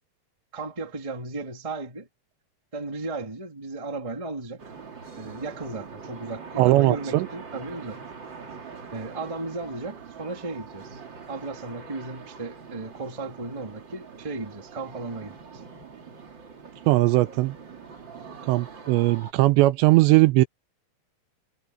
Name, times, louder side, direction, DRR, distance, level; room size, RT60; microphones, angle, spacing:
voice 1, 0.5-2.1 2.7-4.6 5.2-8.0 8.9-11.0 11.3-15.6, right 3 dB, 15° right, 1.1 m, -35 dB
sound 1, 4.6-19.3, right 5 dB, 30° right, 2.4 m, -43 dB
voice 2, 6.6-7.3 16.9-17.6 18.5-20.5, right 18 dB, 80° right, 2.8 m, -19 dB
omnidirectional pair, 5.3 m